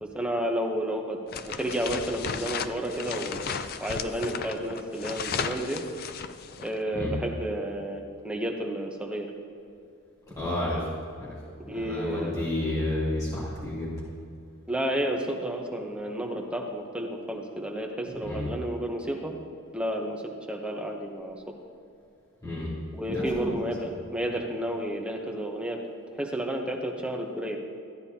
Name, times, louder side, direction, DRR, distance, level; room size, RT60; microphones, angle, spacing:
voice 1, 0.0-3.5 3.8-5.8 6.6-9.3 11.6-12.5 14.7-19.3 19.7-20.2 20.5-21.4 22.9-25.8 26.1-27.6, right 1 dB, 5° right, 1 dB, 0.9 m, -31 dB
sound 1, 1.3-6.8, left 6 dB, 45° left, 0.4 m, -35 dB
voice 2, 10.3-11.4 11.7-14.0 18.2-18.5 22.4-22.7 23.1-24.0, left 1 dB, 15° left, -9 dB, 2.8 m, -31 dB
14.5 x 9.8 x 2.8 m, 2.5 s
head